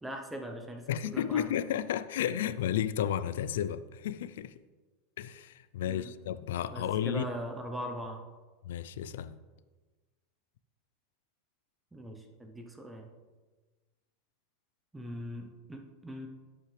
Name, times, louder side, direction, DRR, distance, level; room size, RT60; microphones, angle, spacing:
voice 1, 0.0-1.6 5.9-6.2 6.7-8.3 11.9-13.1 14.9-16.3, equal, 5° right, 0.8 m, -41 dB
voice 2, 0.9-4.5 5.2-7.2 8.6-9.4, left 10 dB, 80° left, 0.4 m, -32 dB
11.5 x 8.4 x 3.3 m
supercardioid pair, 170°, 0 cm